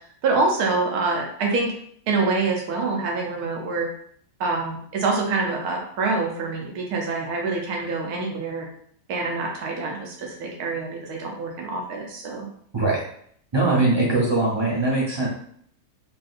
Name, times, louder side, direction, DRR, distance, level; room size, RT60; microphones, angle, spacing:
voice 1, 0.2-1.7 2.1-3.9 4.4-8.7 9.1-12.5, right 3 dB, 85° right, 0 dB, 1.2 m, -26 dB
voice 2, 13.5-15.3, right 2 dB, 25° right, -4 dB, 0.6 m, -21 dB
3.8 x 2.4 x 2.5 m, 0.63 s
omnidirectional pair, 1.6 m